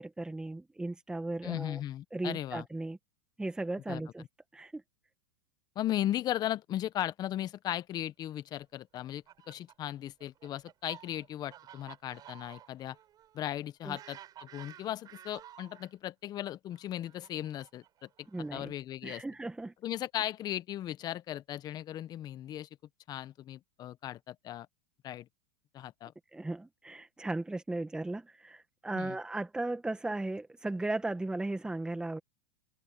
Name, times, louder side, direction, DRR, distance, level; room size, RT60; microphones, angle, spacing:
voice 1, 0.0-1.8 2.1-3.0 3.4-4.2 4.5-4.8 13.8-14.0 18.3-18.7 19.0-19.7 26.3-32.2, right 2 dB, 5° right, 1.5 m, -36 dB
voice 2, 1.4-2.7 3.9-4.0 5.7-13.0 13.3-19.2 19.8-22.7 23.1-24.7 25.0-25.3 25.7-26.1 28.9-29.2, left 12 dB, 35° left, 1.2 m, -37 dB
Fowl, 9.0-15.9 16.7-18.7, right 11 dB, 35° right, 7.0 m, -53 dB
hypercardioid pair, 110°, 11 cm